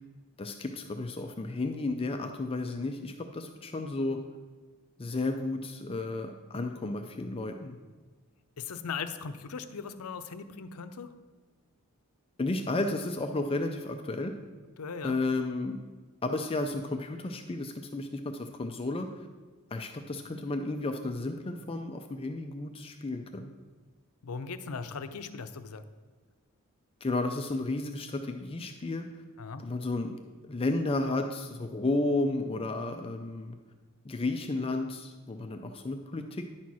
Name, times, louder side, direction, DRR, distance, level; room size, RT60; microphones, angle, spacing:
voice 1, 0.4-4.2 5.0-7.8 12.4-14.4 15.0-15.8 16.2-19.1 19.7-23.5 27.0-29.1 29.6-30.2 30.4-33.6 34.0-36.5, left 2 dB, 25° left, 5 dB, 0.4 m, -32 dB
voice 2, 8.6-11.1 14.8-15.2 24.2-25.8 29.4-29.6, left 5 dB, 80° left, 10 dB, 0.6 m, -38 dB
10.5 x 4.4 x 6.1 m, 1.3 s
head